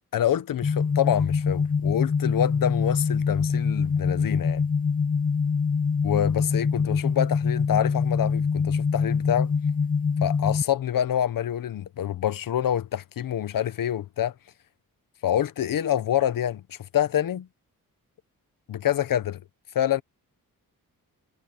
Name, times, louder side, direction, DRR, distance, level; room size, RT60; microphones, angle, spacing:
voice 1, 0.1-4.6 6.0-9.5 10.2-14.3 15.2-17.5 18.7-19.4 19.7-20.0, left 10 dB, 75° left, 1.0 m, -26 dB
sound 1, 0.6-10.6, left 5 dB, 25° left, 0.5 m, -24 dB
wide cardioid pair, 125°, 34 cm